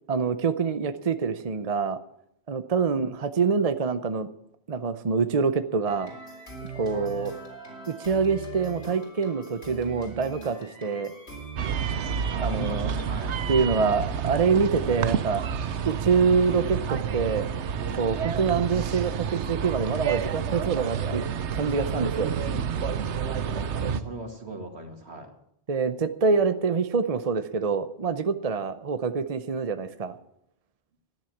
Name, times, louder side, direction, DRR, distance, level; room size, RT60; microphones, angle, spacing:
voice 1, 0.1-2.0 2.5-4.3 4.7-6.1 6.8-7.3 7.9-11.1 12.4-12.9 13.5-15.4 15.9-17.5 18.0-21.2 21.5-22.3 23.9-24.0 25.7-30.1, right 5 dB, 40° right, 11 dB, 0.7 m, -25 dB
sound 1, 5.9-12.7, right 3 dB, 70° left, 4.0 m, -41 dB
sound 2, 11.6-24.0, right 7 dB, 90° right, 1.1 m, -29 dB
voice 2, 12.3-13.4 14.8-15.0 23.0-25.3, right 2 dB, 70° right, 4 dB, 2.6 m, -40 dB
13.5 x 10.5 x 7.2 m, 0.76 s
omnidirectional pair, 1.1 m